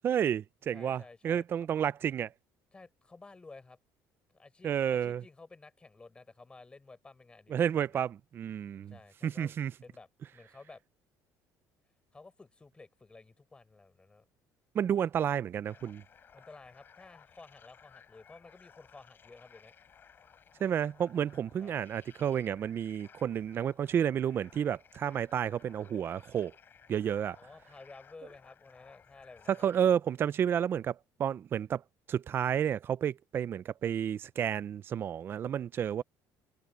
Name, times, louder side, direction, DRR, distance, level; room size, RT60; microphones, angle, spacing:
voice 1, 0.0-2.3 4.6-5.2 7.5-9.0 9.2-9.7 14.7-16.0 20.6-26.5 26.9-27.4 29.5-31.8 32.1-36.0, right 9 dB, 35° right, 0.4 m, -31 dB
voice 2, 0.7-1.7 2.7-3.8 4.3-8.0 8.9-9.5 9.8-10.8 12.1-14.3 16.3-19.7 21.6-21.8 27.4-29.7 36.0-36.1, left 3 dB, 15° left, 5.3 m, -53 dB
sound 1, 15.6-29.9, left 7 dB, 30° left, 7.5 m, -59 dB
cardioid pair, 150°, 7 cm